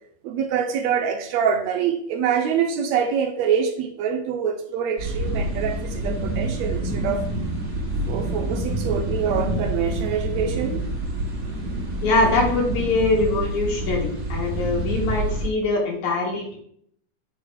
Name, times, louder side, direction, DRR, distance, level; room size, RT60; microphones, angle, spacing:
voice 1, 0.2-7.2 8.1-10.8, right 7 dB, 80° right, 6 dB, 1.8 m, -25 dB
sound 1, 5.0-15.5, right 1 dB, 45° right, 1.9 m, -27 dB
voice 2, 12.0-16.6, left 2 dB, 75° left, -1 dB, 3.2 m, -23 dB
7.9 x 3.7 x 4.8 m, 0.66 s
omnidirectional pair, 3.4 m